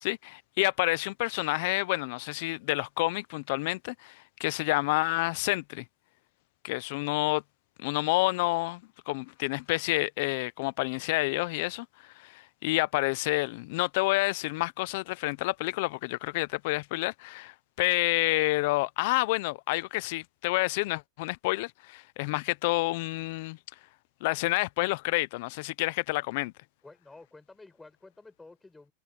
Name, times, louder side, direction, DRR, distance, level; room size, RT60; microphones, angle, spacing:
voice 1, 0.0-5.8 6.6-7.4 7.8-23.6 24.2-26.5, left 22 dB, 50° left, 0.5 m, -29 dB
voice 2, 26.8-28.9, left 3 dB, 5° left, 5.5 m, -51 dB
supercardioid pair, 160°, 0 cm